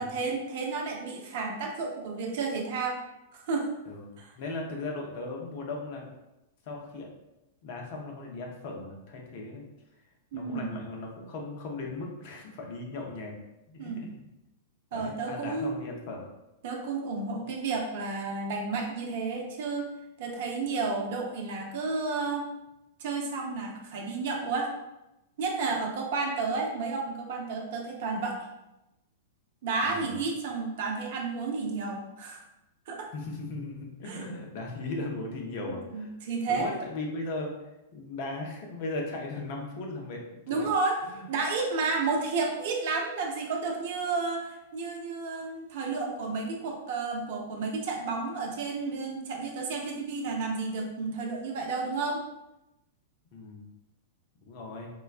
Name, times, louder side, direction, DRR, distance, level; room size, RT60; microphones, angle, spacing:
voice 1, 0.0-3.0 3.3-3.7 4.2-4.3 10.3-10.7 13.8-14.1 14.9-15.8 16.6-19.9 20.2-22.5 23.0-24.7 25.4-28.5 29.6-32.4 32.9-33.1 34.1-34.2 35.6-36.7 40.5-52.2, right 4 dB, 60° right, 1 dB, 0.6 m, -31 dB
voice 2, 3.9-6.1 6.6-7.1 7.6-9.6 10.3-13.3 13.7-14.2 14.9-16.3 29.8-30.2 33.1-36.1 36.5-37.5 37.9-40.7 41.1-41.3 53.3-53.7 54.4-54.9, left 2 dB, 55° left, 0 dB, 0.7 m, -37 dB
3.9 x 2.1 x 2.3 m, 0.93 s
hypercardioid pair, 105°, 0 cm